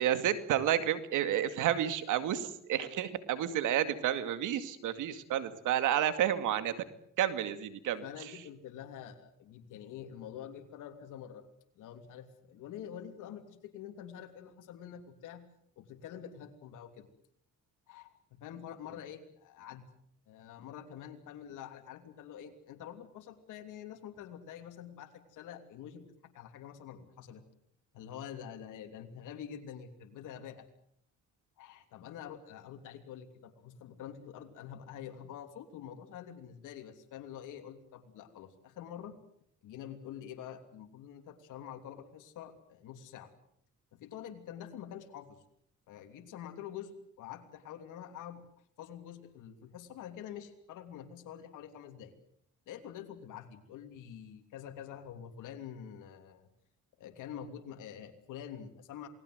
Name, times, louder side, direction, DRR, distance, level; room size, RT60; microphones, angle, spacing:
voice 1, 0.0-6.7 7.2-8.4, right 11 dB, 85° right, 11 dB, 2.3 m, -31 dB
voice 2, 8.0-11.4 11.7-15.4 15.8-17.1 17.9-19.9 20.3-26.0 26.3-27.4 27.9-30.7 31.6-39.2 39.6-43.3 43.9-45.4 45.9-48.4 48.8-52.2 52.7-56.5 57.0-59.1, left 9 dB, 90° left, 5 dB, 3.1 m, -46 dB
28.0 x 19.5 x 7.9 m, 0.71 s
cardioid pair, 90°, 30 cm